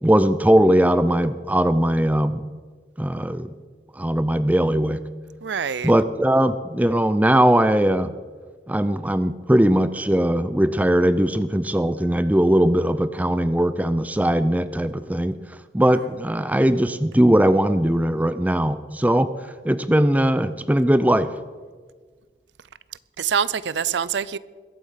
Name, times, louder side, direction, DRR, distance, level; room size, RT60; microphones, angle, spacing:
voice 1, 0.0-2.4 3.0-3.5 4.0-5.0 5.8-8.1 8.7-15.4 15.7-19.3 19.6-21.3, right 1 dB, 10° right, 0.5 m, -19 dB
voice 2, 5.4-5.9 23.2-24.4, right 7 dB, 85° right, 0.5 m, -25 dB
21.5 x 8.4 x 5.7 m
head